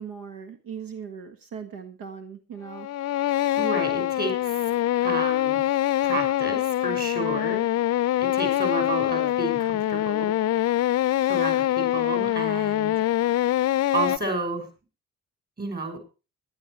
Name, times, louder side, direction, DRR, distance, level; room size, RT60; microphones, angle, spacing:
voice 1, 0.0-2.9, right 7 dB, 80° right, 7 dB, 1.7 m, -39 dB
sound 1, 2.7-14.2, left 13 dB, 50° left, 0.5 m, -24 dB
voice 2, 3.6-4.6 5.0-5.6 6.0-7.7 8.2-10.3 11.3-12.9 13.9-14.7 15.6-16.0, right 2 dB, 30° right, 5 dB, 6.1 m, -31 dB
19.0 x 11.5 x 3.1 m, 0.32 s
cardioid pair, 155°, 34 cm